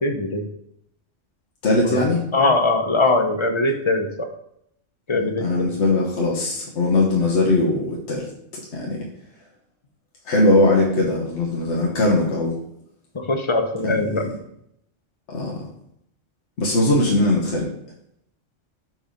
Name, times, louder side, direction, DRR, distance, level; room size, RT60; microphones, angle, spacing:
voice 1, 0.0-0.4 1.9-2.0 2.3-4.1 5.1-5.7 13.1-14.3, left 2 dB, 35° left, 5 dB, 0.5 m, -21 dB
voice 2, 1.6-2.2 5.1-8.3 8.7-9.0 10.3-12.6 13.8-14.3 15.3-15.6 16.6-17.7, left 2 dB, 65° left, -3 dB, 1.4 m, -20 dB
5.3 x 4.7 x 5.2 m, 0.74 s
omnidirectional pair, 1.3 m